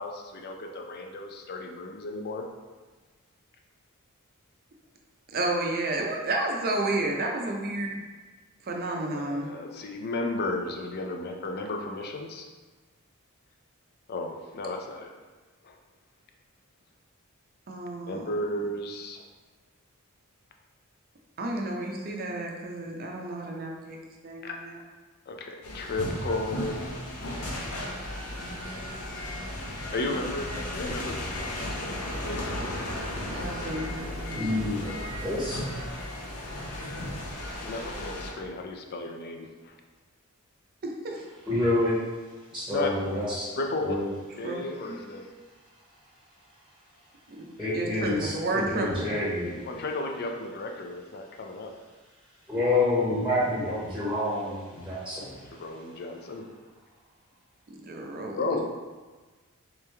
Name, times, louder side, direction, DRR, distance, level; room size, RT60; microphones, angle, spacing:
voice 1, 0.0-2.4 9.1-12.5 14.1-15.1 15.6-15.8 18.1-19.2 24.4-24.5 25.3-26.8 29.9-32.4 37.6-39.8 42.7-42.9 43.6-44.0 44.4-45.3 49.6-51.7 55.5-56.4 58.4-58.6, left 2 dB, 45° left, 3 dB, 0.4 m, -34 dB
voice 2, 5.3-8.0 8.6-9.5 17.7-18.2 21.4-24.0 24.2-24.7 27.4-27.5 33.3-34.4 40.8-41.2 44.4-44.6 44.9-45.0 47.3-47.5 47.7-49.2 57.7-58.6, right 2 dB, 45° right, 1 dB, 0.5 m, -31 dB
sound 1, 25.6-38.3, left 1 dB, 85° left, 0.7 m, -35 dB
voice 3, 34.3-35.6 41.5-42.0 42.5-43.5 43.8-44.1 47.6-49.6 52.5-55.4, left 2 dB, 5° right, -10 dB, 0.8 m, -28 dB
3.4 x 3.1 x 3.3 m, 1.3 s
head